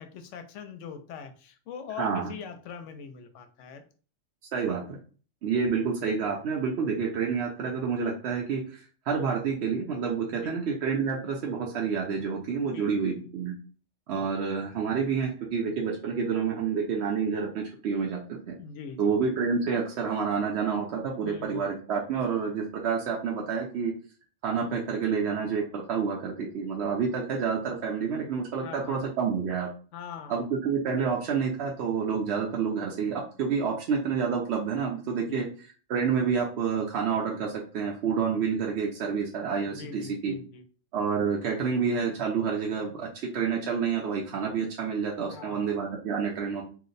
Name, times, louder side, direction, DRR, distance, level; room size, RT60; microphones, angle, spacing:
voice 1, 0.0-3.8 10.4-10.6 12.7-13.3 18.6-19.2 21.2-21.7 28.6-29.0 29.9-30.4 35.2-35.5 39.7-40.7 45.3-45.8, left 6 dB, 75° left, 8 dB, 0.9 m, -42 dB
voice 2, 2.0-2.3 4.5-5.0 5.4-13.5 14.1-18.5 19.0-23.9 24.4-29.7 30.3-35.5 35.9-40.3 40.9-43.1 43.3-46.6, right 6 dB, 65° right, -1 dB, 0.8 m, -28 dB
2.8 x 2.1 x 3.8 m, 0.39 s
omnidirectional pair, 1.3 m